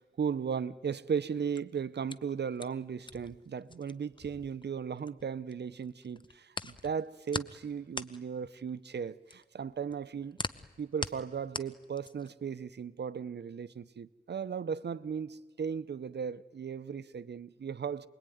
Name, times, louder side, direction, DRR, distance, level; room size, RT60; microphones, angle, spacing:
voice 1, 0.0-6.5 6.8-10.4 10.8-18.1, right 7 dB, 85° right, 0.8 m, -36 dB
sound 1, 1.3-5.5 5.8-12.4, left 3 dB, 25° left, 0.8 m, -42 dB
28.0 x 21.5 x 9.4 m
wide cardioid pair, 90°, 17 cm